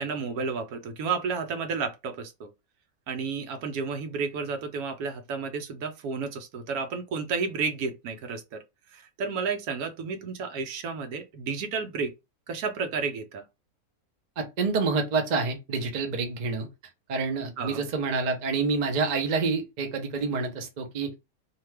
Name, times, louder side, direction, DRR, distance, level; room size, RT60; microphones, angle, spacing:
voice 1, 0.0-2.5 3.1-8.6 8.9-12.1 12.5-13.4 17.6-17.8, right 5 dB, 80° right, 1.1 m, -32 dB
voice 2, 14.4-16.7 17.1-21.2, right 4 dB, 50° right, 0.5 m, -28 dB
2.8 x 2.2 x 3.2 m
omnidirectional pair, 1.6 m